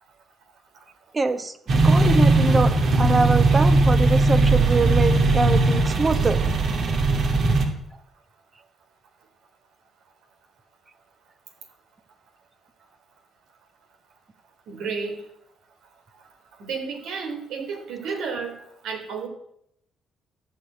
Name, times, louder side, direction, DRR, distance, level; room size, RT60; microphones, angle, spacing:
voice 1, 1.1-1.5 1.8-6.4, right 3 dB, 30° right, 10 dB, 1.3 m, -24 dB
sound 1, 1.7-7.7, right 2 dB, 60° right, 2.3 m, -19 dB
voice 2, 14.7-15.2 16.6-18.6 18.8-19.3, right 5 dB, 85° right, 4 dB, 3.6 m, -31 dB
14.0 x 6.6 x 8.7 m, 0.74 s
cardioid pair, 90°, 0 cm